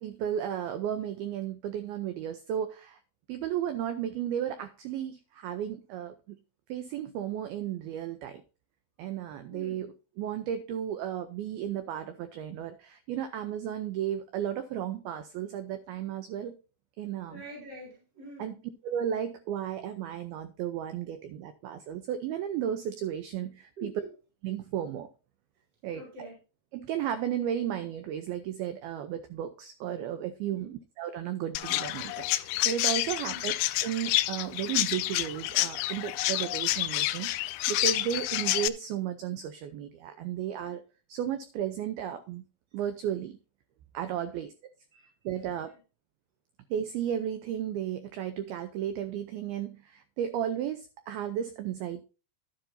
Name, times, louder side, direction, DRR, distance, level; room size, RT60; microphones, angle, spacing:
voice 1, 0.0-3.0 3.3-6.4 6.7-8.4 9.0-9.9 10.2-16.5 17.0-17.4 18.4-18.5 18.8-23.9 24.4-25.1 25.8-26.0 26.7-33.5 33.8-40.8 41.1-42.4 42.7-43.4 43.9-44.5 45.3-45.7 46.7-52.0, right 10 dB, 90° right, 10 dB, 2.1 m, -34 dB
voice 2, 9.5-9.9 17.3-18.6 23.8-24.1 25.9-26.4 30.5-30.8 33.2-33.4 44.2-44.5 44.9-45.7, right 1 dB, 25° right, -4 dB, 3.9 m, -46 dB
Chirp tweet, 31.6-38.7, left 17 dB, 90° left, 2.3 m, -29 dB
12.0 x 10.5 x 2.7 m, 0.33 s
omnidirectional pair, 5.2 m